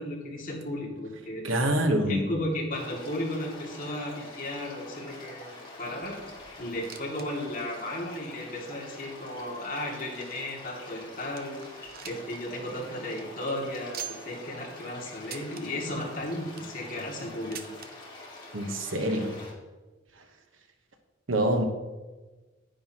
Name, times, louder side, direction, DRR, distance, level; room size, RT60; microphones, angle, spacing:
voice 1, 0.0-1.5 2.1-6.2 6.6-11.7 12.0-17.7, left 1 dB, 45° left, 2.2 m, -35 dB
voice 2, 1.4-2.3 18.5-19.4 21.3-21.6, right 1 dB, 75° right, 1.1 m, -25 dB
sound 1, 2.7-19.5, left 2 dB, 25° left, 2.3 m, -46 dB
sound 2, 6.8-7.3 7.6-7.7 8.3-8.4 9.1-10.6 11.0-11.1 11.4-12.4 12.7-12.8 13.1-13.2 13.9-14.4 15.2-15.6 16.3-16.8 17.5-17.9 18.9-19.0 19.2-19.3 20.1-20.2, right 10 dB, 50° right, 0.6 m, -43 dB
10.0 x 9.4 x 2.9 m
head